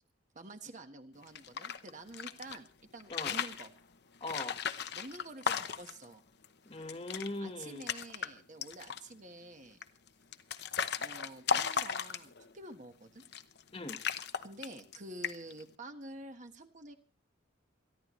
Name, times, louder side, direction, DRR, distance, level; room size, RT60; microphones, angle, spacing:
voice 1, 0.3-2.7 2.9-3.7 4.9-6.2 7.4-9.8 11.0-13.2 14.4-16.9, right 2 dB, 40° right, 6 dB, 1.5 m, -48 dB
sound 1, 1.2-2.6 3.0-3.7 4.2-6.0 6.4-6.5 6.8-7.3 7.6-8.3 8.6-9.1 9.8-12.5 13.2-13.6 13.9-15.0 15.2-15.6, left 7 dB, 60° left, 0.9 m, -36 dB
voice 2, 4.2-4.6 6.6-7.8 13.7-14.0, left 2 dB, 30° left, 7 dB, 1.5 m, -40 dB
28.5 x 11.0 x 3.2 m, 0.38 s
head